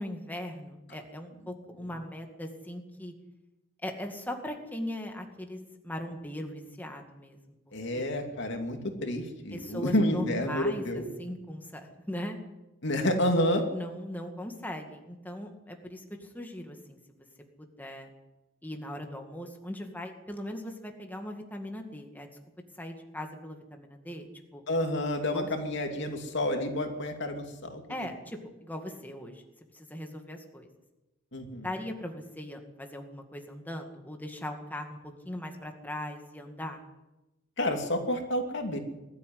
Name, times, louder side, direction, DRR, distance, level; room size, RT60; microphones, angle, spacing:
voice 1, 0.0-3.1 3.8-7.4 7.9-8.2 9.5-12.4 13.7-17.0 17.6-18.1 18.6-22.3 22.8-24.6 25.3-25.5 27.9-29.4 29.7-30.7 31.6-36.8, left 1 dB, 10° left, 3 dB, 2.1 m, -39 dB
voice 2, 7.7-11.1 12.8-13.6 24.7-27.8 31.3-31.7 37.6-38.8, left 1 dB, 65° left, 4 dB, 2.8 m, -29 dB
21.5 x 13.0 x 9.6 m, 1.0 s
head